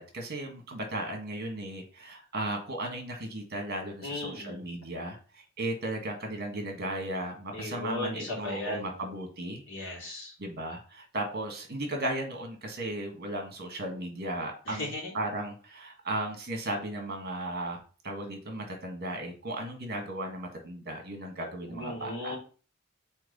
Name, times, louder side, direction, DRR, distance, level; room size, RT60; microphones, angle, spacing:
voice 1, 0.0-9.6 10.4-14.9 15.1-17.8 18.0-22.4, right 1 dB, 50° right, 3 dB, 1.6 m, -36 dB
voice 2, 4.0-4.6 7.5-9.2 9.7-10.3 14.7-15.1 21.7-22.4, left 2 dB, 60° left, -3 dB, 3.0 m, -36 dB
4.6 x 4.4 x 5.3 m, 0.39 s
head